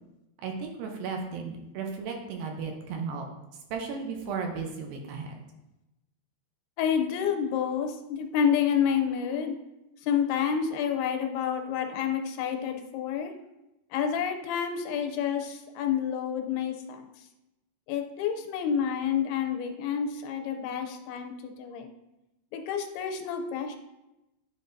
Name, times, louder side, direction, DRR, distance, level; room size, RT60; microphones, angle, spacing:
voice 1, 0.4-3.3 3.7-5.3, right 5 dB, 75° right, 2 dB, 2.4 m, -35 dB
voice 2, 6.8-9.6 10.0-13.3 13.9-17.1 17.9-21.9 22.5-23.8, left 8 dB, 85° left, 5 dB, 2.6 m, -29 dB
10.5 x 3.9 x 2.6 m, 0.94 s
omnidirectional pair, 4.4 m